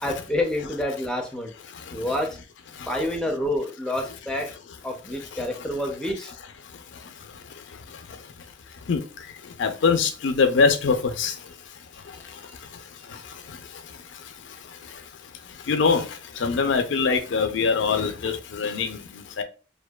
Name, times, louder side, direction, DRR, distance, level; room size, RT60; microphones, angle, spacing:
voice 1, 0.0-1.5 1.9-2.3 2.9-4.5 4.8-6.3, left 1 dB, 5° left, 0.4 m, -28 dB
voice 2, 9.6-11.3 15.7-16.0 16.4-19.4, left 5 dB, 80° left, 0.4 m, -22 dB
2.6 x 2.2 x 2.2 m
head